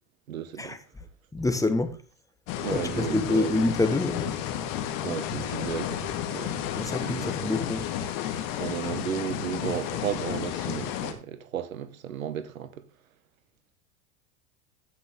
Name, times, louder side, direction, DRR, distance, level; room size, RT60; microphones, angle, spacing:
voice 1, 0.3-0.8 2.6-3.6 5.0-6.6 7.0-7.5 8.6-12.9, right 9 dB, 90° right, 1.1 m, -34 dB
voice 2, 1.3-2.0 2.7-4.3 6.7-7.8, left 2 dB, 10° left, 1.3 m, -26 dB
sound 1, 2.5-11.1, left 10 dB, 55° left, 1.7 m, -32 dB
14.5 x 6.0 x 3.6 m
hypercardioid pair, 95°, 40 cm